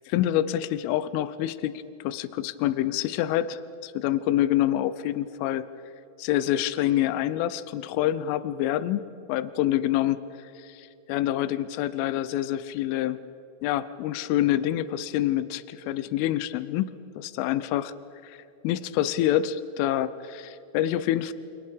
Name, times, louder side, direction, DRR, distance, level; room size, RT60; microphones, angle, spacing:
voice 1, 0.1-5.7 6.2-13.2 13.6-17.9 18.2-18.4 18.6-21.3, left 12 dB, 85° left, 14 dB, 3.3 m, -27 dB
29.0 x 28.5 x 5.2 m, 2.9 s
omnidirectional pair, 5.6 m